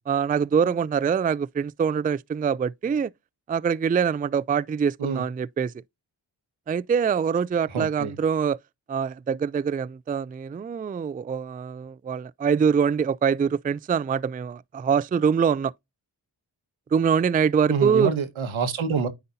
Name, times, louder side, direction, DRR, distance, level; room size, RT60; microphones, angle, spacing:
voice 1, 0.1-3.1 3.5-5.7 6.7-8.6 8.9-15.7 16.9-18.1, right 6 dB, 20° right, 0.3 m, -24 dB
voice 2, 7.7-8.1 17.7-19.1, right 5 dB, 80° right, 1.5 m, -26 dB
9.7 x 4.0 x 2.7 m
cardioid pair, 40°, 46 cm